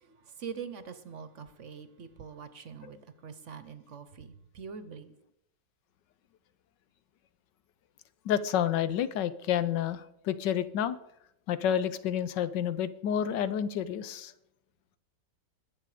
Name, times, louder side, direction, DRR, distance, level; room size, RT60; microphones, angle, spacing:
voice 1, 0.0-5.1, right 6 dB, 50° right, 12 dB, 1.0 m, -44 dB
voice 2, 8.3-11.0 11.5-14.3, left 9 dB, 85° left, 14 dB, 1.4 m, -29 dB
21.0 x 7.6 x 5.0 m, 0.80 s
omnidirectional pair, 1.9 m